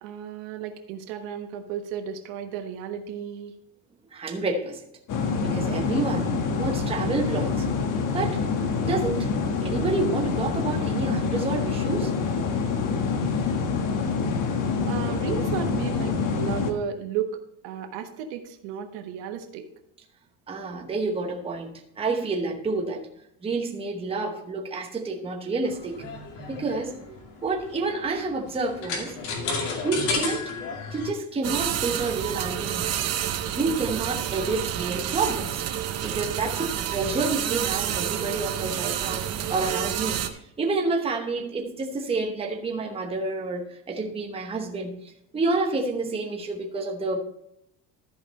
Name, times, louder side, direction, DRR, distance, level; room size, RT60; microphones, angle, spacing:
voice 1, 0.0-3.6 14.9-19.7, right 8 dB, 90° right, 5 dB, 1.4 m, -33 dB
voice 2, 4.1-4.8 5.4-7.6 8.1-8.4 8.8-12.1 20.5-23.1 23.4-26.0 26.5-27.1 27.4-29.2 29.8-30.5 30.9-33.0 33.5-35.6 36.0-40.2 40.6-47.2, right 3 dB, 15° right, 1 dB, 1.0 m, -29 dB
sound 1, 5.1-16.7, left 5 dB, 45° left, 1.2 m, -26 dB
sound 2, 25.6-31.1, left 4 dB, 70° left, 2.5 m, -32 dB
sound 3, 31.4-40.3, right 10 dB, 35° right, 0.7 m, -29 dB
14.0 x 5.1 x 4.1 m, 0.77 s
cardioid pair, 175°, 43 cm